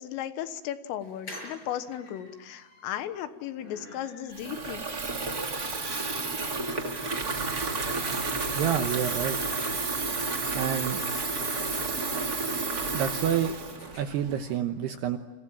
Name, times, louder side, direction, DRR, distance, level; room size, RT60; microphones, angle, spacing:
voice 1, 0.0-4.9, left 11 dB, 80° left, 11 dB, 3.8 m, -36 dB
sound 1, 1.0-9.6 10.0-10.1 10.3-10.4 10.6-14.0, left 2 dB, 25° left, 8.0 m, -49 dB
Water tap faucet / Fill (with liquid), 4.3-14.6, right 3 dB, 30° right, 1.7 m, -31 dB
voice 2, 8.5-9.4 10.5-11.0 12.9-13.5 14.0-15.2, right 9 dB, 75° right, 7 dB, 2.5 m, -28 dB
30.0 x 26.5 x 7.3 m, 1.2 s
omnidirectional pair, 6.0 m